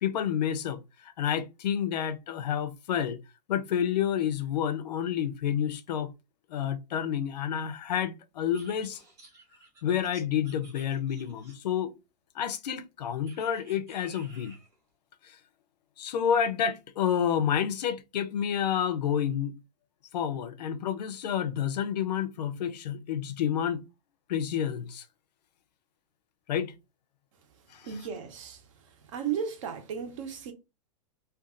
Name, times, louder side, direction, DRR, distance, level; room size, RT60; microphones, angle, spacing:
voice 1, 0.0-3.2 3.5-6.1 6.5-9.0 9.8-11.9 12.3-14.5 15.2-15.4 16.0-19.5 20.1-23.8 24.3-25.0 26.5-26.8 27.7-28.0, left 9 dB, 75° left, 0.5 m, -29 dB
sound 1, 8.5-11.8 13.3-14.7, right 2 dB, 15° right, 0.8 m, -54 dB
voice 2, 27.8-28.6 29.1-30.5, right 7 dB, 50° right, 0.8 m, -34 dB
2.5 x 2.3 x 3.7 m
supercardioid pair, 175°, 21 cm